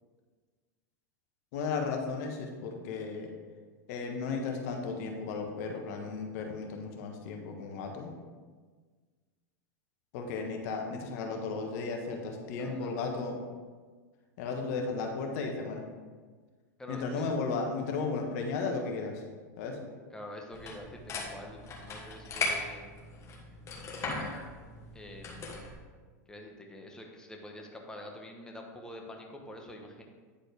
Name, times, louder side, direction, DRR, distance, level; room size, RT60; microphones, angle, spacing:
voice 1, 1.5-3.3 3.9-8.1 10.1-13.4 14.4-15.8 16.9-19.2 19.6-19.8, left 4 dB, 60° left, 2 dB, 1.2 m, -34 dB
voice 2, 12.6-13.0 16.8-17.3 20.1-22.9 24.9-25.6 26.3-30.0, left 1 dB, 5° left, 1 dB, 1.1 m, -46 dB
sound 1, 20.5-25.7, left 3 dB, 30° left, 1.4 m, -38 dB
9.8 x 4.1 x 3.4 m, 1.5 s
hypercardioid pair, 115°, 10 cm